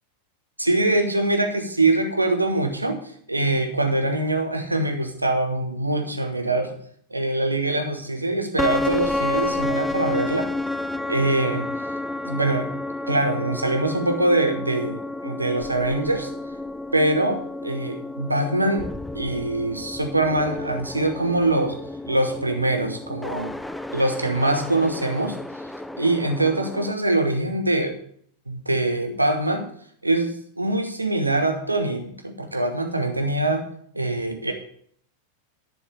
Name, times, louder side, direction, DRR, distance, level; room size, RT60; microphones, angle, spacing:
voice 1, 0.6-6.8 7.1-10.5 11.1-11.7 12.2-12.7 13.1-16.3 16.9-18.9 19.1-21.7 22.1-23.5 23.9-25.4 26.0-28.0 28.5-29.7 30.0-33.7 33.9-34.5, right 2 dB, 85° right, 5 dB, 1.2 m, -23 dB
sound 1, 8.6-26.9, left 2 dB, 5° left, 0.4 m, -31 dB
10.5 x 4.7 x 6.6 m, 0.62 s
figure-of-eight pair, 90°, 0 cm